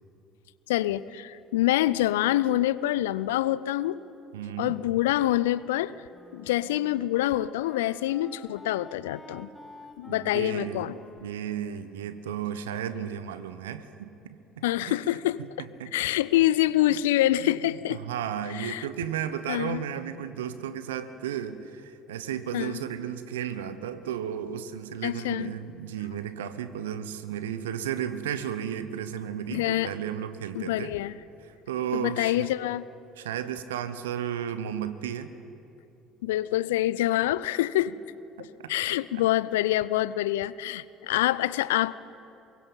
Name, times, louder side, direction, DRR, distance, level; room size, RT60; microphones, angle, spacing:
voice 1, 0.7-4.0 4.6-5.9 6.3-9.5 10.0-11.0 14.6-15.7 15.9-18.0 18.5-18.9 19.5-19.8 22.5-22.8 25.0-25.5 29.5-29.9 30.5-31.1 31.9-32.9 36.2-38.0 38.7-41.9, left 14 dB, 75° left, 18 dB, 0.5 m, -26 dB
voice 2, 4.3-4.8 10.1-10.9 11.2-15.0 15.8-15.9 17.4-17.6 17.9-30.9 31.7-32.5 33.2-35.3 38.4-38.7, right 9 dB, 80° right, 12 dB, 1.0 m, -34 dB
Wind instrument woodwind instrument, 5.6-12.8, left 2 dB, 15° left, 2.8 m, -50 dB
24.0 x 22.0 x 5.6 m, 2.8 s
hypercardioid pair, 60°, 0 cm